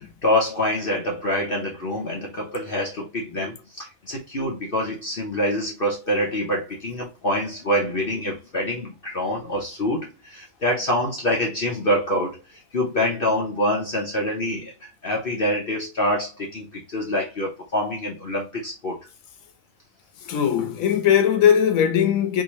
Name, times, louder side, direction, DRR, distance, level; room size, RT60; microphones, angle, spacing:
voice 1, 0.0-19.0, left 1 dB, 45° left, 0.9 m, -26 dB
voice 2, 20.3-22.4, left 9 dB, 80° left, 1.1 m, -19 dB
3.7 x 2.7 x 3.0 m
omnidirectional pair, 1.4 m